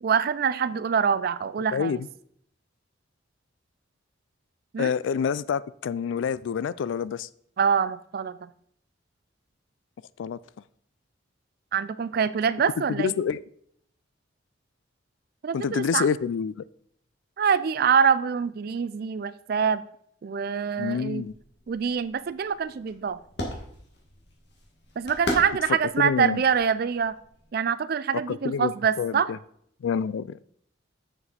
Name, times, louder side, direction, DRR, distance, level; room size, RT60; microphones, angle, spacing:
voice 1, 0.0-2.0 4.7-4.9 7.6-8.5 11.7-13.1 15.4-16.1 17.4-19.8 20.2-21.2 21.7-23.2 25.0-27.2 27.5-29.3, right 6 dB, 50° right, 0.4 m, -25 dB
voice 2, 1.7-2.1 4.8-7.3 10.2-10.4 12.9-13.4 15.5-16.6 20.8-21.3 26.0-26.4 28.3-29.4 29.8-30.4, left 6 dB, 75° left, 0.3 m, -27 dB
sound 1, 21.2-27.5, left 1 dB, 60° left, 1.8 m, -38 dB
6.8 x 6.8 x 4.3 m
head